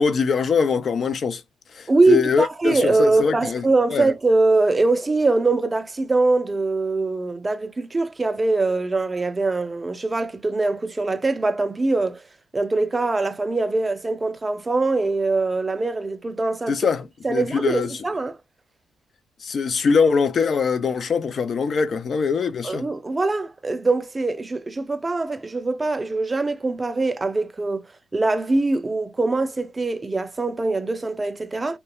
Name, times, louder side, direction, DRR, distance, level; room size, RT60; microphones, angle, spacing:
voice 1, 0.0-1.4 1.7-3.6 3.9-4.1 16.7-17.9 19.4-22.9, left 5 dB, 50° left, 0.4 m, -22 dB
voice 2, 1.9-12.2 12.5-16.8 17.2-18.4 22.6-27.8 28.1-31.8, right 3 dB, 20° right, 0.4 m, -22 dB
2.3 x 2.2 x 2.8 m
cardioid pair, 90°, 0 cm